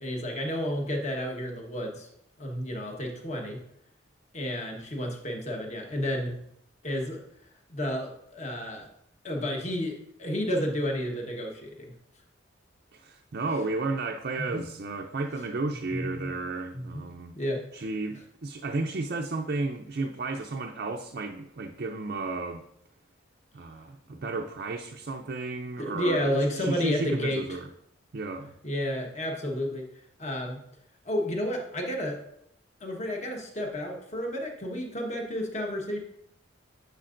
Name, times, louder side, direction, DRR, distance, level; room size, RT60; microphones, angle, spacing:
voice 1, 0.0-2.1 2.4-3.6 4.3-6.4 6.8-7.2 7.7-8.9 9.2-11.9 14.4-14.7 15.9-16.3 16.7-17.1 17.3-17.8 24.1-24.2 25.8-27.4 28.6-29.9 30.2-30.6 31.0-32.2 32.8-36.0, equal, 35° left, 1.2 m, -31 dB
voice 2, 12.9-17.3 17.7-22.6 23.5-27.7 28.1-28.5, right 3 dB, 50° right, 0.5 m, -33 dB
9.9 x 6.7 x 2.6 m
head